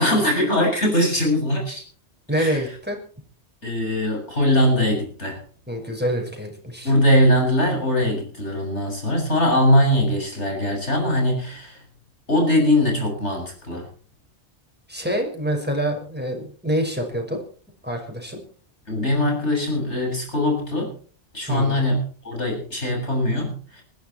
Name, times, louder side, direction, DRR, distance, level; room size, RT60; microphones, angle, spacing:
voice 1, 0.0-1.8 2.3-2.6 3.6-5.4 6.8-11.8 12.3-13.9 18.9-20.9 21.3-22.0 22.2-23.8, left 1 dB, 80° left, 1 dB, 7.7 m, -21 dB
voice 2, 2.3-3.0 5.7-6.9 14.9-17.4 17.8-18.4 21.5-21.8, equal, 10° right, 2 dB, 5.8 m, -26 dB
21.0 x 14.5 x 4.5 m, 0.43 s
omnidirectional pair, 1.2 m